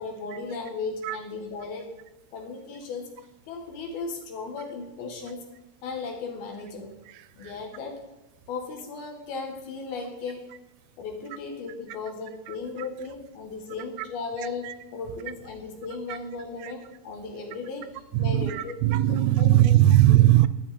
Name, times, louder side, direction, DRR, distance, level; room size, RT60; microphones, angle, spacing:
voice 1, 0.0-1.9 2.3-3.1 3.5-5.5 5.8-7.0 7.4-8.0 8.5-10.5 11.0-18.8 19.1-19.8, left 4 dB, 70° left, 2 dB, 3.4 m, -36 dB
voice 2, 18.1-20.5, right 14 dB, 85° right, 14 dB, 2.5 m, -19 dB
12.5 x 10.0 x 4.3 m, 0.96 s
omnidirectional pair, 4.7 m